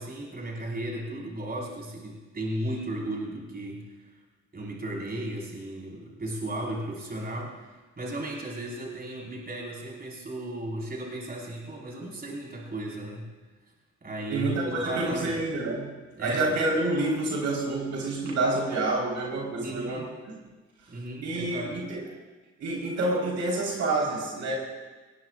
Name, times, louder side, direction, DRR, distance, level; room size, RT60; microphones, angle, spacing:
voice 1, 0.0-4.2 4.5-13.3 14.0-15.4 16.2-16.5 19.6-20.1 20.9-21.8, right 1 dB, 30° right, -3 dB, 5.1 m, -35 dB
voice 2, 14.3-15.9 16.2-20.1 21.2-22.0 22.6-24.5, right 2 dB, 70° right, -3 dB, 4.6 m, -28 dB
20.5 x 18.5 x 2.6 m, 1.3 s
cardioid pair, 90°, 30 cm